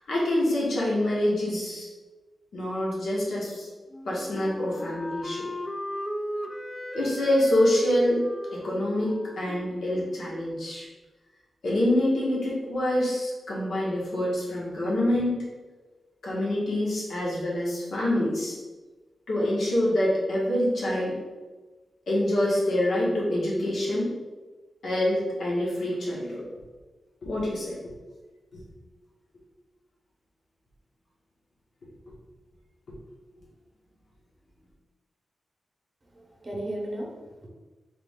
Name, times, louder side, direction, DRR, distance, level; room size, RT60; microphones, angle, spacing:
voice 1, 0.1-1.9 2.5-3.7 4.0-5.4 6.9-8.2 8.5-10.9 11.6-15.4 16.2-18.6 19.3-21.2 22.1-24.1 24.8-26.4 27.2-27.8, left 1 dB, 85° left, -5 dB, 1.4 m, -26 dB
Wind instrument woodwind instrument, 3.9-10.7, equal, 15° left, 0.3 m, -37 dB
voice 2, 36.0-37.5, right 1 dB, 25° right, -2 dB, 0.8 m, -36 dB
3.6 x 3.1 x 3.6 m, 1.2 s
wide cardioid pair, 170°, 0 cm